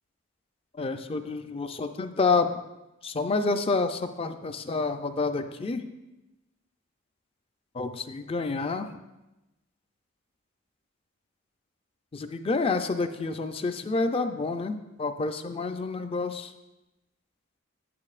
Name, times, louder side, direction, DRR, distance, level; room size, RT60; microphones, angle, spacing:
voice 1, 0.8-2.6 3.0-5.8 7.7-8.9 12.1-16.5, left 3 dB, 25° left, 8 dB, 0.4 m, -28 dB
9.1 x 8.6 x 2.4 m, 0.99 s
head